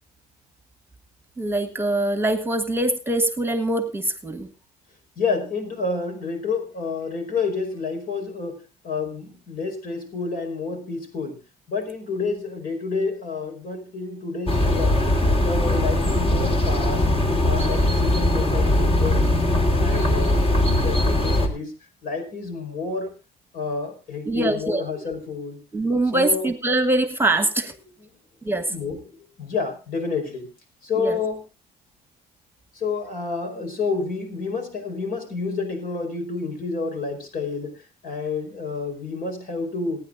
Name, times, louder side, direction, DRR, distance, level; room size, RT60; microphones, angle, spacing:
voice 1, 1.4-4.5 24.2-24.8 25.7-27.7 28.4-28.7 31.0-31.2, right 2 dB, 15° right, 11 dB, 1.4 m, -23 dB
voice 2, 5.2-11.4 11.7-15.0 15.4-17.1 17.4-19.5 19.8-21.7 22.0-23.1 23.5-25.6 26.1-26.5 28.0-28.1 28.7-30.5 30.8-31.4 32.7-40.0, left 4 dB, 60° left, 6 dB, 4.9 m, -29 dB
sound 1, 14.5-21.5, left 1 dB, 35° left, 2.8 m, -20 dB
27.5 x 9.6 x 2.5 m, 0.30 s
cardioid pair, 110°, 17 cm